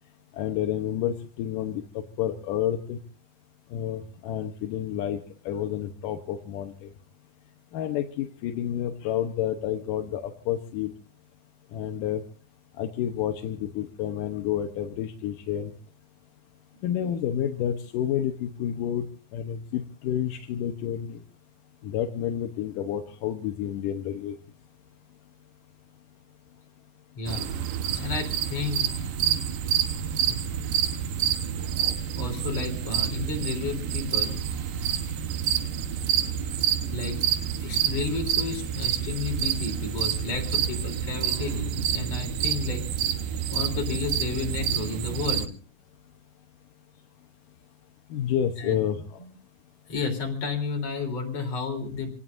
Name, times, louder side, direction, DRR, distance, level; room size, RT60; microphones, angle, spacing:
voice 1, 0.3-3.0 3.7-5.2 5.5-6.9 7.7-10.9 11.7-12.2 12.8-15.7 16.8-19.1 19.3-21.2 21.8-24.4 48.1-49.0, left 10 dB, 70° left, 5 dB, 2.2 m, -29 dB
voice 2, 27.2-27.5 27.8-28.9 30.2-30.4 32.1-34.4 36.9-37.2 37.5-42.8 43.5-45.5 48.6-48.8 49.2-49.3 49.9-52.1, left 4 dB, 40° left, 2 dB, 4.4 m, -32 dB
sound 1, 27.3-45.5, right 9 dB, 65° right, 2.4 m, -28 dB
27.5 x 18.5 x 2.6 m, 0.36 s
omnidirectional pair, 4.6 m